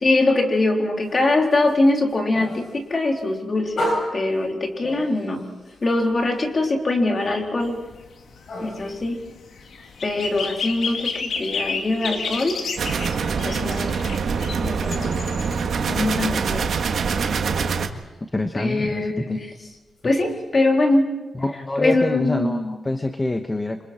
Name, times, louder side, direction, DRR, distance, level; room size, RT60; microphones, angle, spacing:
voice 1, 0.0-5.5 5.8-7.8 8.6-9.2 10.0-12.6 13.4-14.0 14.6-15.3 15.9-17.0 18.5-19.5 20.0-21.1 21.8-22.8, left 2 dB, 35° left, 2 dB, 3.7 m, -22 dB
sound 1, 1.0-13.5 13.8-20.4, equal, 60° left, 8.0 m, -37 dB
sound 2, 7.6-16.0, left 5 dB, 75° left, 2.4 m, -32 dB
sound 3, 12.8-17.9, right 5 dB, 70° right, 1.8 m, -24 dB
voice 2, 18.3-19.4 21.3-23.9, left 2 dB, 15° left, 6 dB, 1.1 m, -26 dB
28.5 x 26.0 x 4.4 m, 1.1 s
wide cardioid pair, 125°, 0 cm